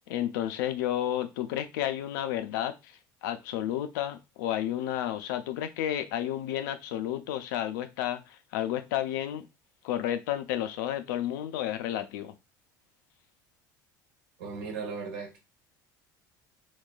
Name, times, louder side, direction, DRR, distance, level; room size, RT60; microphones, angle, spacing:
voice 1, 0.1-2.9 3.2-9.5 9.8-12.3, left 12 dB, 75° left, 0.4 m, -31 dB
voice 2, 14.4-15.4, right 5 dB, 80° right, 1.1 m, -37 dB
3.9 x 2.2 x 2.2 m
hypercardioid pair, 75°, 10 cm